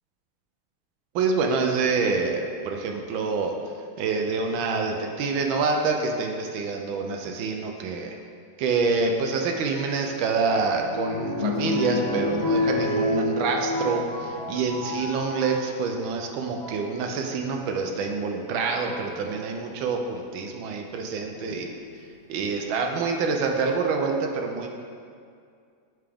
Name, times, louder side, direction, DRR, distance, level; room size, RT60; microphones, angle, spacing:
voice 1, 1.1-3.5 4.0-8.2 8.6-21.7 22.3-24.7, right 4 dB, 75° right, 3 dB, 1.3 m, -26 dB
sound 1, 10.0-15.7 16.4-16.9 18.1-18.2 18.9-19.2 21.3-22.0 22.6-22.7 22.9-23.0, left 2 dB, 60° left, 0.6 m, -29 dB
8.3 x 3.4 x 3.4 m, 2.2 s
omnidirectional pair, 2.3 m